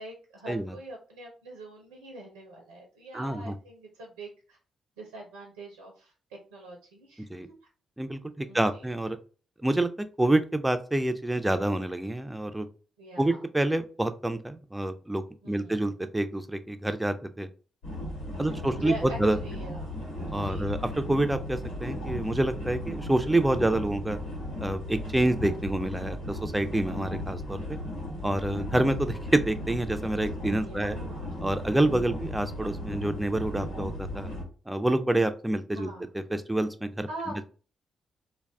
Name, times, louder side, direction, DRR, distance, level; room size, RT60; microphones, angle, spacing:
voice 1, 0.0-4.6 5.0-7.3 8.4-8.9 13.0-13.4 15.4-16.0 18.4-20.0 20.4-20.7 30.6-31.4 35.7-36.1 37.1-37.4, right 2 dB, 85° right, 1 dB, 0.5 m, -43 dB
voice 2, 3.1-3.5 7.3-7.5 8.0-9.2 9.6-9.9 10.2-12.7 13.2-17.5 18.4-19.4 20.3-24.2 24.6-27.8 28.2-31.0 31.4-34.3 34.7-35.9 36.3-37.1, right 1 dB, 10° right, 9 dB, 0.4 m, -27 dB
sound 1, 17.8-34.4, left 1 dB, 90° left, 1.2 m, -36 dB
2.3 x 2.2 x 3.4 m, 0.37 s
hypercardioid pair, 40°, 0 cm